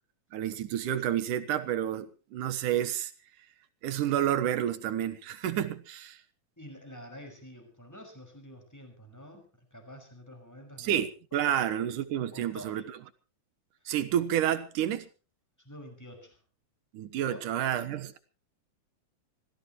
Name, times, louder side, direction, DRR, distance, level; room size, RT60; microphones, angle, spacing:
voice 1, 0.3-3.1 3.8-6.2 10.8-12.8 13.9-15.1 16.9-18.2, right 10 dB, 90° right, 2.8 m, -30 dB
voice 2, 6.6-11.0 11.5-11.6 12.3-12.8 15.6-16.4 17.3-17.5, equal, 5° left, 5.6 m, -48 dB
25.5 x 16.0 x 3.1 m
omnidirectional pair, 3.5 m